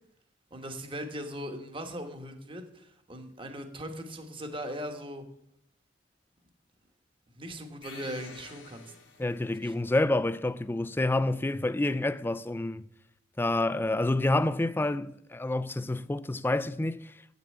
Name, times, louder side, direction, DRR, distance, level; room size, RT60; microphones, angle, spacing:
voice 1, 0.5-5.2 7.4-8.9 9.6-9.7, equal, 25° right, 1.2 m, -39 dB
sound 1, 7.8-9.7, left 5 dB, 85° left, 1.7 m, -49 dB
voice 2, 9.2-12.8 13.4-17.4, left 2 dB, 10° left, 0.3 m, -28 dB
8.2 x 6.7 x 8.3 m
head